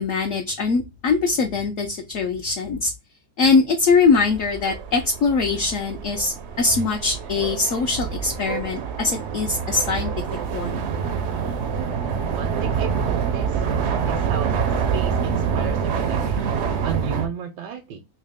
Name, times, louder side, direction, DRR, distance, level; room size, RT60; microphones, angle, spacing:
voice 1, 0.0-2.9 3.4-10.3 10.5-10.8, left 4 dB, 65° left, 0.8 m, -22 dB
sound 1, 4.0-17.3, right 6 dB, 70° right, 0.6 m, -26 dB
voice 2, 12.3-13.6 14.1-14.5 14.9-18.0, right 8 dB, 90° right, 1.2 m, -33 dB
3.1 x 2.8 x 3.4 m
omnidirectional pair, 1.8 m